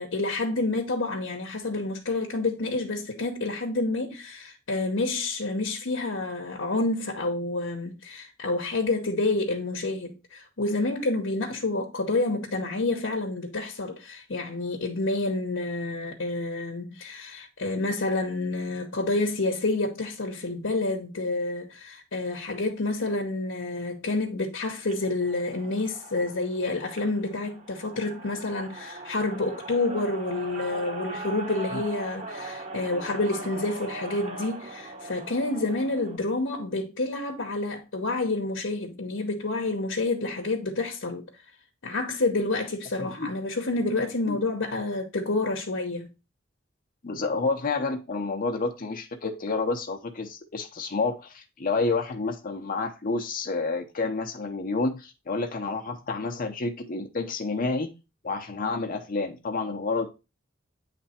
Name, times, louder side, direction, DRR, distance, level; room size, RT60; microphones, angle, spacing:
voice 1, 0.0-41.3 41.8-46.1, left 2 dB, 80° left, 0.9 m, -29 dB
sound 1, 24.8-36.2, right 2 dB, 35° right, 1.1 m, -40 dB
voice 2, 43.0-43.3 44.3-44.4 47.0-57.9 58.2-60.1, left 3 dB, 45° left, 0.7 m, -29 dB
8.6 x 3.4 x 4.2 m
head